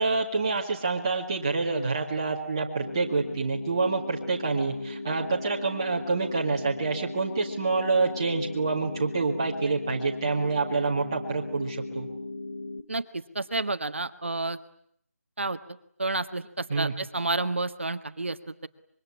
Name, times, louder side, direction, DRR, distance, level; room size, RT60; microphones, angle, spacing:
voice 1, 0.0-12.1 16.7-16.9, right 4 dB, 15° right, -2 dB, 2.0 m, -27 dB
sound 1, 2.8-12.8, left 2 dB, 50° left, 3.0 m, -37 dB
voice 2, 12.9-14.6 15.4-15.6 16.0-18.7, right 2 dB, 50° right, 10 dB, 1.6 m, -30 dB
25.5 x 23.0 x 9.7 m, 0.68 s
figure-of-eight pair, 180°, 8 cm